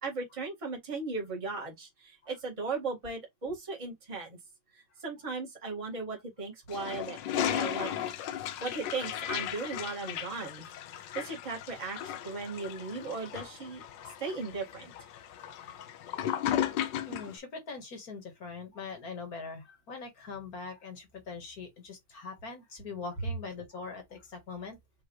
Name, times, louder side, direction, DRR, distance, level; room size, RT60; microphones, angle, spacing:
voice 1, 0.0-4.4 4.7-7.2 7.4-8.1 8.6-10.7 11.1-14.9, right 4 dB, 15° right, 1.8 m, -37 dB
Toilet flush, 6.7-17.3, left 10 dB, 70° left, 1.2 m, -35 dB
voice 2, 17.1-24.8, left 4 dB, 50° left, 1.8 m, -42 dB
5.3 x 3.0 x 3.1 m
omnidirectional pair, 2.2 m